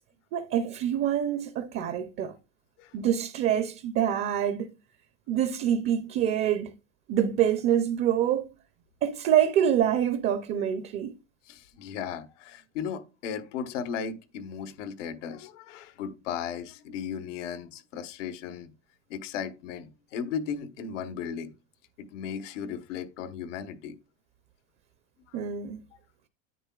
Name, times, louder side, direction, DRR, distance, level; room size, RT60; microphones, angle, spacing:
voice 1, 0.3-2.3 2.9-4.7 5.3-6.7 7.1-8.5 9.0-11.1 25.3-25.8, right 10 dB, 30° right, 0.5 m, -26 dB
voice 2, 11.4-18.7 19.1-21.5 22.0-24.0 25.3-25.4, left 7 dB, 80° left, 1.2 m, -36 dB
9.9 x 8.4 x 2.3 m
supercardioid pair, 150°, 36 cm